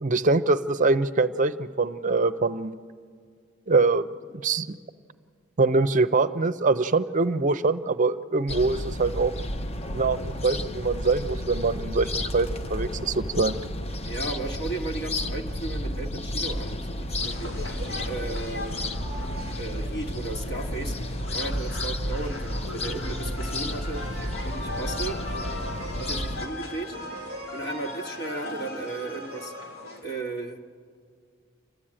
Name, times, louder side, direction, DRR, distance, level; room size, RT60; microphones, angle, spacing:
voice 1, 0.0-2.7 3.7-4.8 5.6-9.3 9.9-13.6, right 3 dB, 40° right, 12 dB, 0.6 m, -24 dB
sound 1, 8.5-26.5, left 1 dB, 30° left, 0.7 m, -32 dB
voice 2, 14.0-17.5 18.1-18.9 19.6-20.9 21.3-24.0 24.4-25.2 26.0-27.0 27.5-29.5 30.0-30.6, right 2 dB, 55° left, 1 dB, 1.6 m, -35 dB
sound 2, 17.2-30.0, left 1 dB, 90° left, 4.1 m, -38 dB
29.0 x 12.5 x 8.8 m, 2.1 s
head